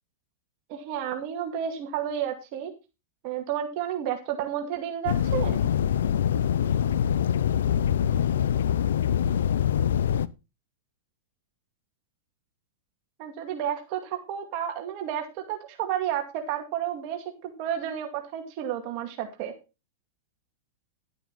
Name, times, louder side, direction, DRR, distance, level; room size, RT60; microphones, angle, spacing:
voice 1, 0.7-2.7 3.2-5.7 13.2-19.5, right 10 dB, 50° right, 4 dB, 2.3 m, -31 dB
sound 1, 5.1-10.3, left 9 dB, 85° left, 0.6 m, -24 dB
11.5 x 8.3 x 4.1 m, 0.28 s
hypercardioid pair, 135°, 0 cm